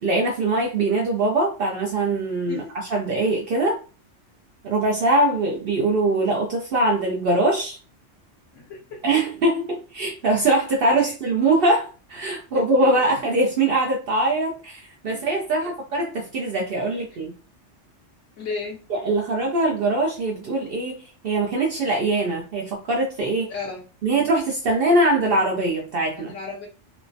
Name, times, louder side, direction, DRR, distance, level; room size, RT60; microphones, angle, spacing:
voice 1, 0.0-2.6 2.9-3.8 4.6-7.8 9.0-17.3 18.9-23.5 24.0-26.3, right 2 dB, 60° right, -1 dB, 0.7 m, -22 dB
voice 2, 8.5-9.0 10.9-11.1 15.1-15.2 15.6-15.7 18.4-18.8 23.5-23.8 26.2-26.7, left 4 dB, 80° left, -2 dB, 1.1 m, -34 dB
3.2 x 2.1 x 2.5 m, 0.35 s
omnidirectional pair, 1.2 m